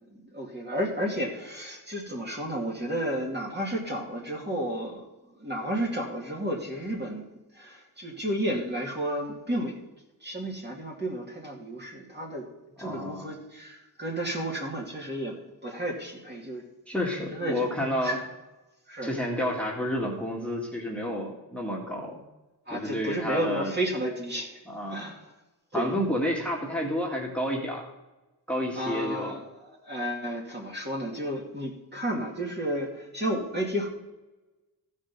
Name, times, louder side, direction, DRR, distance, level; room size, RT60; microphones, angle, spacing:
voice 1, 0.3-5.0 5.4-7.2 7.5-9.8 10.2-12.5 12.8-15.3 15.6-16.6 17.3-17.7 18.0-18.2 18.9-19.1 22.7-24.6 24.9-25.2 25.7-25.9 28.7-29.4 29.8-33.9, right 1 dB, 25° right, -2 dB, 2.2 m, -32 dB
voice 2, 12.8-13.3 16.9-18.2 19.0-22.2 22.7-23.7 24.7-25.1 25.7-27.9 28.5-29.3, equal, 5° left, -3 dB, 2.1 m, -30 dB
15.0 x 5.4 x 5.3 m, 1.1 s
wide cardioid pair, 90°, 40 cm